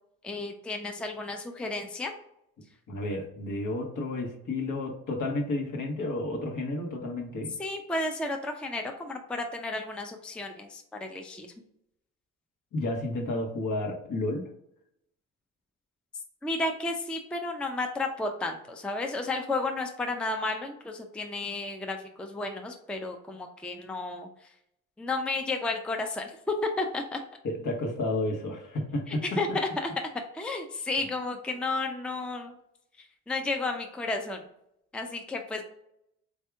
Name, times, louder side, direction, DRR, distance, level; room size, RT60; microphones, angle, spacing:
voice 1, 0.2-2.1 7.6-11.5 16.4-24.3 25.0-27.2 29.1-29.9 30.3-32.5 33.3-34.4 34.9-35.6, left 2 dB, 5° left, 4 dB, 0.5 m, -32 dB
voice 2, 2.9-7.5 12.7-14.5 27.4-29.4, left 2 dB, 60° left, 1 dB, 1.2 m, -31 dB
3.5 x 2.7 x 3.4 m, 0.75 s
supercardioid pair, 65°, 37 cm